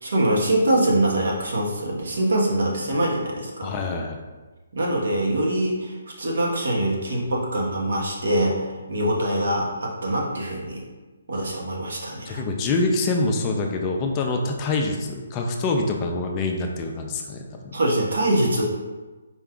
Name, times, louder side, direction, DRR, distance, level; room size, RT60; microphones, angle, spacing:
voice 1, 0.0-3.7 4.7-10.8 11.3-12.4 17.7-18.6, right 1 dB, 70° right, -2 dB, 1.1 m, -24 dB
voice 2, 3.6-4.2 12.2-17.8, left 3 dB, 20° left, 2 dB, 0.4 m, -25 dB
4.4 x 2.3 x 3.7 m, 1.2 s
hypercardioid pair, 165°, 0 cm